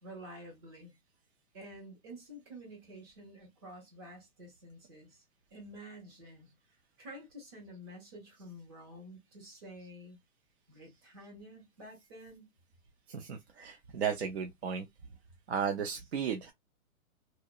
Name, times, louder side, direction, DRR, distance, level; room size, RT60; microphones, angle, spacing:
voice 1, 0.0-0.9 1.5-5.2 5.5-6.5 7.0-10.2 10.7-12.5, equal, 20° right, 0.7 m, -50 dB
voice 2, 13.1-14.9 15.5-16.5, right 7 dB, 50° right, 0.5 m, -34 dB
2.9 x 2.1 x 2.3 m
hypercardioid pair, 165°, 43 cm